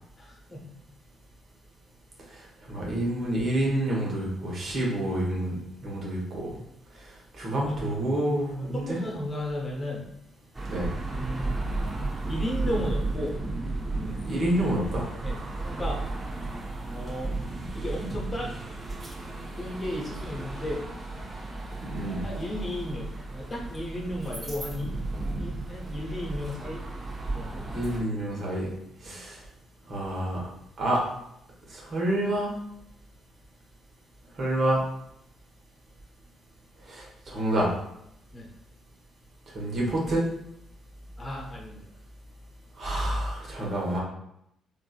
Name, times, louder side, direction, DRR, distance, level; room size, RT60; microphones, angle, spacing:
voice 1, 0.2-0.7 8.9-10.0 11.1-11.6 12.3-13.3 15.2-16.0 16.9-17.3 17.7-18.5 19.6-20.8 22.2-24.9 25.4-26.8 27.3-27.7 29.0-29.1 38.3-38.5 41.2-41.8, left 1 dB, 30° left, -1 dB, 1.0 m, -34 dB
voice 2, 2.7-5.6 5.8-6.6 7.4-9.0 10.7-10.9 14.0-15.0 21.8-22.2 27.7-28.7 29.0-29.4 29.9-30.4 30.8-31.0 31.7-32.5 34.4-34.8 36.9-37.7 39.5-40.2 42.8-44.0, right 1 dB, 50° right, -4 dB, 1.3 m, -28 dB
sound 1, 10.5-28.0, right 2 dB, 25° right, 1.1 m, -34 dB
3.8 x 2.5 x 2.4 m, 0.76 s
hypercardioid pair, 45°, 0 cm